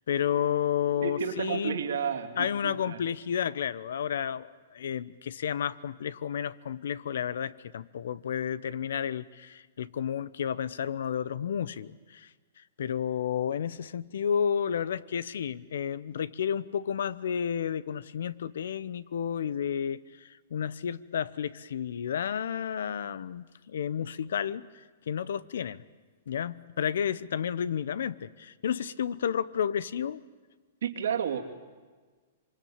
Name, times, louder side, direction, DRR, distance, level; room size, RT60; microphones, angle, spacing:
voice 1, 0.1-1.8 2.4-12.3 12.6-24.7 25.1-25.8 26.3-30.2, left 8 dB, 75° left, 18 dB, 0.9 m, -31 dB
voice 2, 1.0-3.0 30.8-31.4, right 7 dB, 80° right, 3 dB, 2.9 m, -31 dB
26.0 x 24.0 x 8.8 m, 1.4 s
hypercardioid pair, 130°, 0 cm